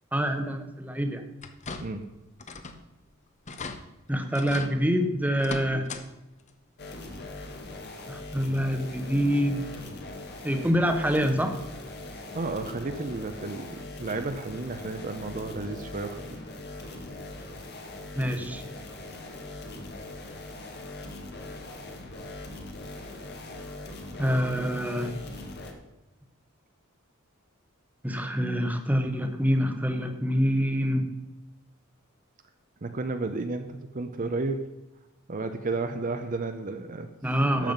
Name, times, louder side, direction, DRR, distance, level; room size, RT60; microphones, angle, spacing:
voice 1, 0.1-1.2 4.1-5.9 8.1-9.6 10.4-11.6 18.1-18.6 24.2-25.3 28.0-31.1 37.2-37.7, equal, 5° right, 6 dB, 1.0 m, -26 dB
sound 1, 1.4-2.1 2.4-2.8 3.1-3.2 3.5-3.8 4.3-4.7 5.3-6.0 6.4-6.5 7.9-8.0 8.5-8.6, left 3 dB, 35° left, 0.8 m, -38 dB
voice 2, 1.8-2.2 12.3-16.4 17.5-17.6 32.8-34.7 35.3-37.1 37.6-37.7, right 3 dB, 40° right, 7 dB, 0.7 m, -32 dB
sound 2, 6.8-25.7, left 2 dB, 50° left, 1.7 m, -41 dB
12.0 x 7.7 x 5.3 m, 0.98 s
head